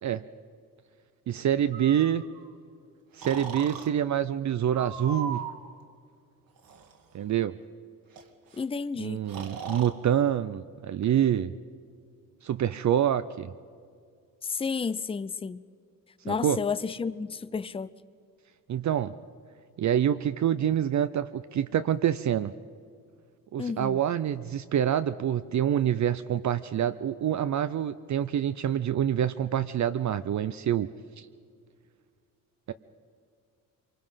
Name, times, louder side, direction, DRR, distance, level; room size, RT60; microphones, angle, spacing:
voice 1, 1.3-2.2 3.1-5.4 7.1-7.6 9.0-11.5 12.4-13.5 16.3-16.6 18.7-19.1 19.8-22.5 23.5-30.9 31.2-31.3 32.7-32.8, right 10 dB, 55° right, 0.6 m, -26 dB
Breathing, 1.7-2.5 3.2-3.9 4.7-5.7 6.6-7.0 8.2-8.3 8.5-8.6 9.3-9.9, right 5 dB, 70° right, 2.0 m, -38 dB
voice 2, 8.6-9.2 14.4-15.6 16.2-17.9 23.6-24.0, left 5 dB, 15° left, 0.5 m, -31 dB
25.5 x 23.5 x 5.7 m
cardioid pair, 120°, 35 cm